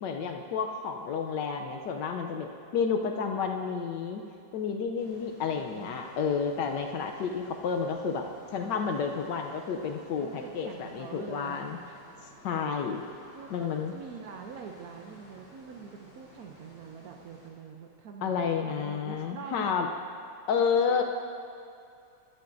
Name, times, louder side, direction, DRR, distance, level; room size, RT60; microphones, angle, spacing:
voice 1, 0.0-4.2 4.5-8.2 8.5-11.8 12.4-13.0 13.5-13.9 18.2-19.9 20.5-21.0, left 6 dB, 75° left, 3 dB, 1.3 m, -30 dB
voice 2, 2.9-3.3 5.5-6.1 10.2-11.6 13.3-19.8 20.9-21.0, right 6 dB, 65° right, 3 dB, 1.0 m, -45 dB
sound 1, 5.0-17.5, right 1 dB, 50° left, 3.3 m, -55 dB
13.5 x 11.5 x 2.6 m, 2.5 s
omnidirectional pair, 2.0 m